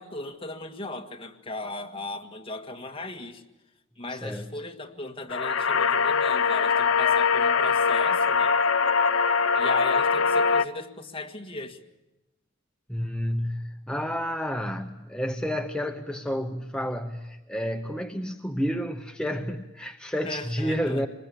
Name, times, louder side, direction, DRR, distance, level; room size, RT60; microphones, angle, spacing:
voice 1, 0.0-3.4 4.0-8.6 9.6-11.8 20.2-21.0, left 2 dB, 30° left, 4 dB, 1.8 m, -37 dB
voice 2, 4.1-4.5 12.9-21.1, equal, 5° left, 5 dB, 0.8 m, -30 dB
sound 1, 5.3-10.6, left 5 dB, 80° left, 0.8 m, -22 dB
25.0 x 20.5 x 8.5 m, 1.0 s
head